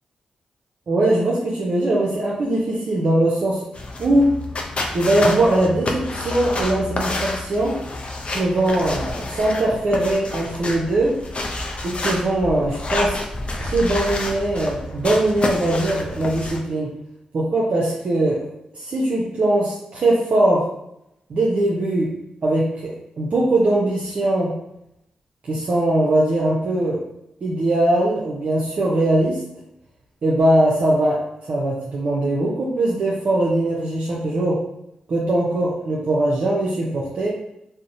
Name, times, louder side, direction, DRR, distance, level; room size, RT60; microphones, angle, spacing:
voice 1, 0.9-3.6 4.0-4.3 4.9-7.8 8.3-11.1 11.8-13.2 13.6-16.9 17.3-18.4 18.8-20.6 21.3-22.1 22.4-22.9 23.2-24.5 25.4-27.0 27.4-29.4 30.2-31.2 31.5-34.6 35.1-37.3, right 1 dB, 60° right, -5 dB, 0.5 m, -20 dB
sound 1, 3.7-16.6, left 2 dB, 50° left, 0.4 m, -29 dB
2.6 x 2.0 x 2.6 m, 0.81 s
supercardioid pair, 45°, 3 cm